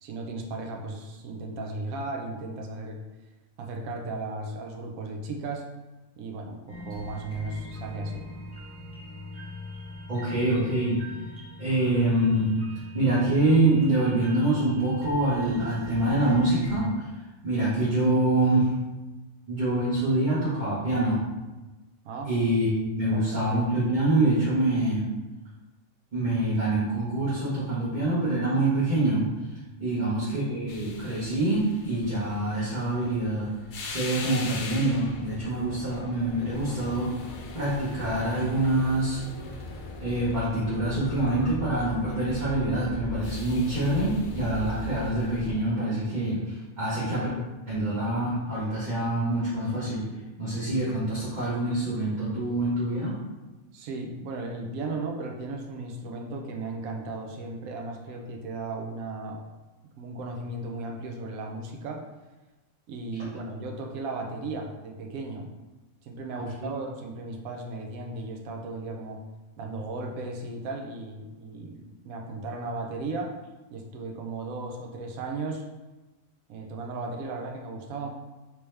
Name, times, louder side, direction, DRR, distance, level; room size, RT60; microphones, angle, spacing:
voice 1, 0.0-3.0 3.6-5.7 6.2-8.3 22.0-22.3 23.1-23.6 29.9-30.1 53.7-59.5 60.0-62.0 62.9-65.5 66.0-69.2 69.6-73.3 73.7-75.6 76.5-78.1, right 3 dB, 90° right, 2 dB, 1.1 m, -36 dB
sound 1, 6.7-16.9, left 1 dB, 5° left, 0.8 m, -41 dB
voice 2, 10.1-11.0 11.6-12.6 12.9-17.1 17.4-18.8 19.5-21.2 22.2-25.0 26.1-29.3 29.8-33.5 33.9-37.2 37.5-39.2 40.0-47.3 47.7-50.0 50.4-53.2 66.3-66.4, right 1 dB, 35° right, -10 dB, 1.1 m, -25 dB
sound 2, 30.7-45.5, left 2 dB, 70° left, 0.4 m, -39 dB
3.4 x 2.9 x 3.2 m, 1.1 s
omnidirectional pair, 1.4 m